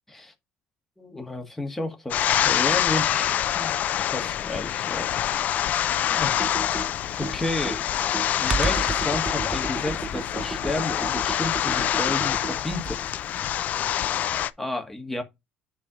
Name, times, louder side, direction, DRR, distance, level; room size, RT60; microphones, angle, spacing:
voice 1, 1.0-3.7 4.1-5.1 6.1-6.5 7.2-7.8 8.4-13.1 14.6-15.2, left 2 dB, 5° left, 1.7 m, -32 dB
sound 1, 2.1-14.5, left 11 dB, 50° left, 0.5 m, -26 dB
Computer keyboard, 6.3-13.1, right 4 dB, 20° right, 0.5 m, -33 dB
9.6 x 3.4 x 5.0 m
cardioid pair, 140°, 3 cm